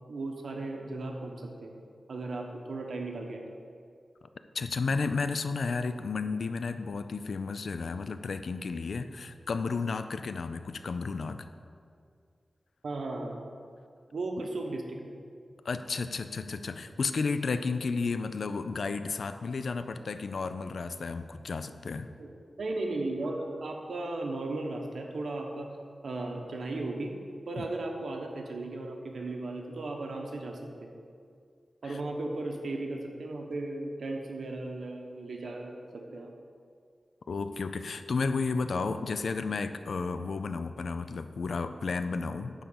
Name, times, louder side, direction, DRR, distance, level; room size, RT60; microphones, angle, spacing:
voice 1, 0.1-1.7 2.1-3.4 12.8-13.4 14.1-15.0 22.2-22.3 22.6-25.7 26.0-27.1 27.5-30.9 31.8-36.3, right 2 dB, 80° right, 2 dB, 1.1 m, -36 dB
voice 2, 4.5-11.5 15.6-22.1 27.6-27.7 31.8-32.0 37.3-42.6, left 4 dB, 75° left, 10 dB, 0.4 m, -32 dB
10.5 x 3.8 x 7.1 m, 2.3 s
wide cardioid pair, 130°, 0 cm